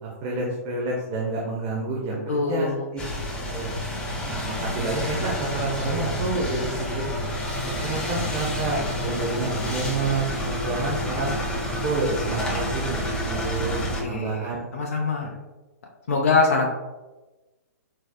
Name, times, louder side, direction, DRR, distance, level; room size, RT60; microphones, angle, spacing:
voice 1, 0.0-3.0 3.5-3.8 4.2-7.0 7.7-11.3 11.8-13.7 14.1-14.8 15.2-15.3, right 3 dB, 35° right, -3 dB, 0.7 m, -29 dB
voice 2, 2.3-2.8 14.0-15.3 16.1-16.7, left 3 dB, 60° left, -1 dB, 0.5 m, -23 dB
sound 1, 3.0-14.0, equal, 10° left, 0.6 m, -29 dB
3.9 x 2.7 x 2.2 m, 1.1 s
figure-of-eight pair, 115°, 9 cm